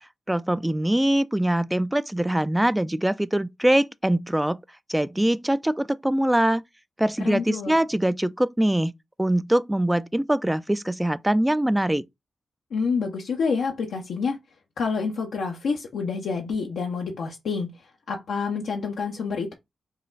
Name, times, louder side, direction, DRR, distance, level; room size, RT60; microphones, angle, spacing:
voice 1, 0.3-4.6 4.9-6.6 7.0-8.9 9.2-12.0, right 1 dB, 10° right, 0.3 m, -23 dB
voice 2, 7.2-7.8 12.7-14.4 14.8-19.5, left 5 dB, 85° left, 0.7 m, -28 dB
4.0 x 2.3 x 3.8 m
cardioid pair, 50°, 0 cm